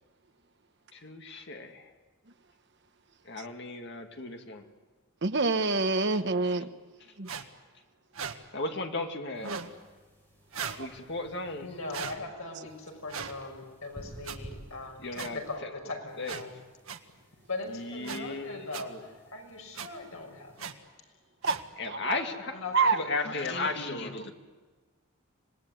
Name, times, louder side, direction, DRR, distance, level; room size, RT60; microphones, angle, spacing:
voice 1, 0.9-1.9 3.2-4.6 8.5-9.6 10.8-11.7 15.0-15.7 16.2-16.5 17.7-19.0 21.8-22.6 22.9-24.3, left 3 dB, 55° left, 2.3 m, -35 dB
voice 2, 5.2-6.7 7.2-7.3 10.8-10.9 21.4-21.6 21.9-22.2 22.7-23.0, right 3 dB, 55° right, 1.1 m, -26 dB
sound 1, 7.3-7.4 8.1-8.4 9.4-9.7 10.5-10.8 11.9-12.2 13.1-13.3 14.2-14.4 15.2-15.3 16.2-16.4 16.9-17.0 18.0-18.2 18.7-18.8 19.7-19.9 20.6-20.7 21.4-21.6, right 6 dB, 75° right, 1.7 m, -37 dB
sound 2, 9.3-12.2 12.7-15.6 16.1-20.7, equal, 10° left, 6.6 m, -54 dB
voice 3, 11.6-16.5 17.5-18.9 19.3-20.7 22.3-23.5, left 3 dB, 85° left, 6.0 m, -40 dB
26.0 x 19.5 x 9.4 m
head